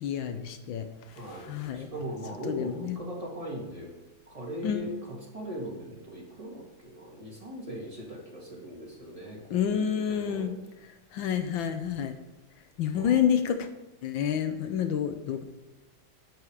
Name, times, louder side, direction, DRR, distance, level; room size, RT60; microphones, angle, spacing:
voice 1, 0.0-1.9 2.4-3.0 4.6-4.9 9.5-10.5 11.1-12.2 12.8-13.7 14.0-15.4, left 8 dB, 85° left, 8 dB, 1.7 m, -29 dB
voice 2, 1.1-3.9 4.3-4.9 5.3-10.5 12.9-13.2, equal, 20° right, -3 dB, 2.7 m, -39 dB
10.5 x 8.1 x 4.9 m, 1.1 s
omnidirectional pair, 2.1 m